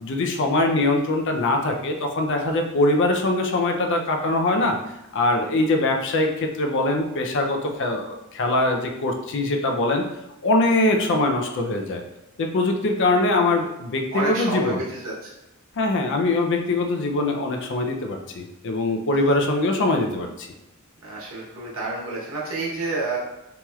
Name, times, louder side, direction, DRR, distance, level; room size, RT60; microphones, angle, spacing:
voice 1, 0.0-4.8 5.1-10.0 10.4-12.0 12.4-14.8 15.8-20.5, left 2 dB, 60° left, 3 dB, 0.4 m, -22 dB
voice 2, 14.1-15.3 21.0-23.2, right 2 dB, 65° right, -4 dB, 1.0 m, -29 dB
3.0 x 2.9 x 2.3 m, 0.93 s
head